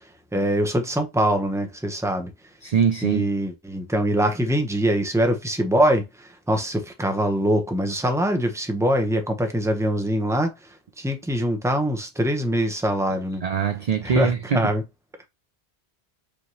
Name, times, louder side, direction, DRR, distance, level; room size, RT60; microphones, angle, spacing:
voice 1, 0.3-2.3 3.0-10.5 11.0-13.4 14.0-14.8, right 1 dB, 5° right, 0.7 m, -23 dB
voice 2, 2.6-3.3 13.4-14.7, right 7 dB, 55° right, 0.4 m, -22 dB
5.1 x 2.9 x 3.0 m
omnidirectional pair, 1.1 m